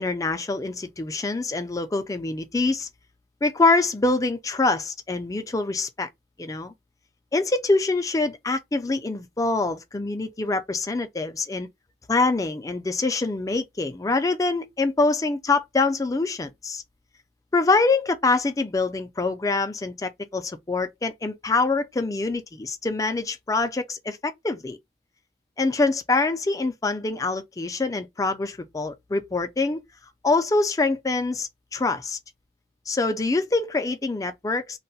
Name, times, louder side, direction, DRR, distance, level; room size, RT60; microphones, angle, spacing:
voice 1, 0.0-2.9 3.4-6.1 6.4-6.7 7.3-11.7 12.1-16.8 17.5-24.8 25.6-29.8 30.2-32.2 32.9-34.8, left 3 dB, 20° left, 0.4 m, -25 dB
2.3 x 2.1 x 3.9 m
head